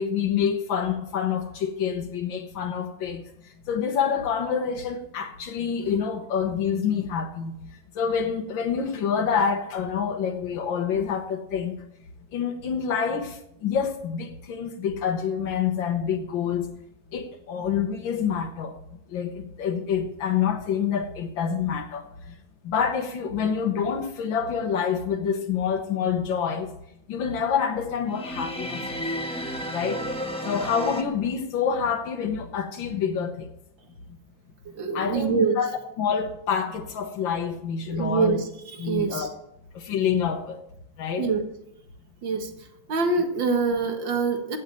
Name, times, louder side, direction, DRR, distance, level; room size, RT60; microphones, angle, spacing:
voice 1, 0.0-3.2 3.7-7.5 8.0-11.8 12.3-16.7 17.1-18.7 19.1-22.0 22.6-26.7 27.1-29.0 29.7-30.1 30.4-33.5 34.9-35.7 36.0-38.4 38.8-39.3 39.8-40.6 41.0-41.3, left 7 dB, 85° left, 3 dB, 1.9 m, -27 dB
sound 1, 28.1-31.0, equal, 5° left, 1.0 m, -32 dB
voice 2, 34.7-35.6 37.9-39.3 41.2-41.5 42.2-44.6, right 4 dB, 80° right, 4 dB, 2.4 m, -25 dB
16.5 x 6.5 x 9.1 m, 0.78 s
omnidirectional pair, 2.0 m